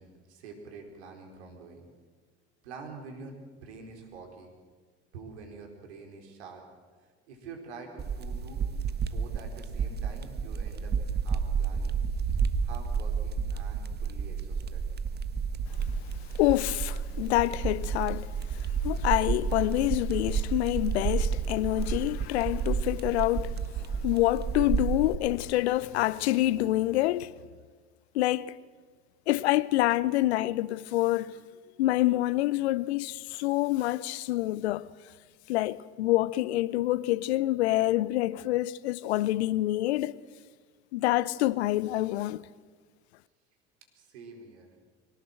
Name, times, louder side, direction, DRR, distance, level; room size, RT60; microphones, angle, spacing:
voice 1, 0.0-1.9 2.6-4.5 5.1-6.6 7.0-8.7 9.1-14.8 43.9-44.7, right 4 dB, 70° right, 4.6 m, -47 dB
sound 1, 8.0-25.2, right 6 dB, 30° right, 1.5 m, -31 dB
voice 2, 16.3-27.3 28.1-28.6 29.3-31.4 31.8-34.9 35.5-40.1 40.9-42.4, left 16 dB, 70° left, 0.8 m, -27 dB
24.0 x 18.0 x 7.8 m
figure-of-eight pair, 70°, 34 cm